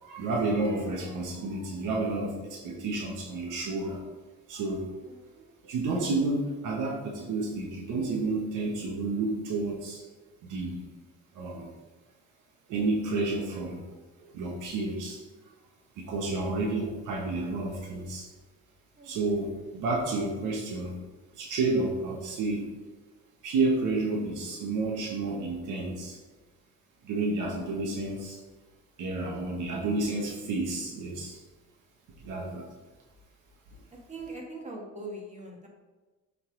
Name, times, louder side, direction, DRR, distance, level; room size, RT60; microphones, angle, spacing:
voice 1, 0.0-4.0 4.5-4.9 5.6-10.0 10.4-10.8 11.3-11.7 12.7-13.8 14.2-15.2 16.0-18.3 19.0-21.0 21.3-22.7 23.4-26.2 27.0-28.4 29.0-31.4 32.2-32.7 33.7-33.8, right 3 dB, 90° right, -1 dB, 1.1 m, -30 dB
voice 2, 5.1-5.5 19.0-19.2 34.1-35.7, right 2 dB, 25° right, -1 dB, 1.7 m, -42 dB
7.6 x 3.9 x 3.8 m, 1.2 s
cardioid pair, 90°, 30 cm